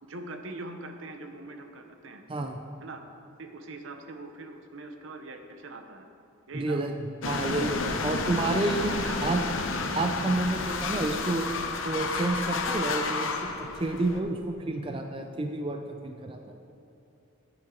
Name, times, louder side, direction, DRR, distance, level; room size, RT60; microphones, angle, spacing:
voice 1, 0.0-2.2 2.8-3.0 3.4-6.1 6.5-6.9 8.0-8.2 8.6-9.2 9.6-9.7 10.3-10.4, right 2 dB, 70° right, 6 dB, 0.8 m, -42 dB
voice 2, 6.5-6.9 7.2-9.4 9.9-11.5 11.9-13.3 13.6-16.5, right 2 dB, 25° right, 4 dB, 0.4 m, -29 dB
sound 1, 7.2-14.2, left 3 dB, 70° left, 0.7 m, -31 dB
10.5 x 8.8 x 3.8 m, 2.9 s
head